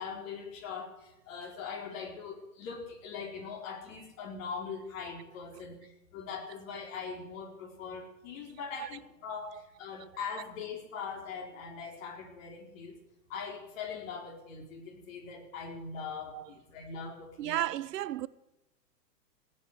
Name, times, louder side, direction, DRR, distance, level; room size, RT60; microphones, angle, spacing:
voice 1, 0.0-13.0 13.3-17.6, left 5 dB, 50° left, 4.4 m, -41 dB
voice 2, 17.4-18.3, right 13 dB, 75° right, 0.7 m, -33 dB
17.0 x 8.8 x 8.1 m
hypercardioid pair, 130°, 49 cm